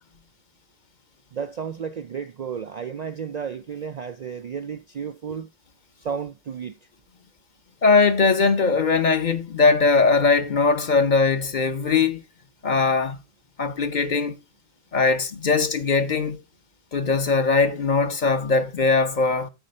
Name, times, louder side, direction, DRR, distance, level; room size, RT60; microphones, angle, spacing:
voice 1, 1.3-5.5 6.0-6.8, right 7 dB, 90° right, 0.3 m, -32 dB
voice 2, 7.8-12.2 12.6-13.2 13.6-14.4 14.9-16.4 16.9-19.5, left 4 dB, 45° left, 0.8 m, -20 dB
9.1 x 4.3 x 5.2 m
omnidirectional pair, 1.3 m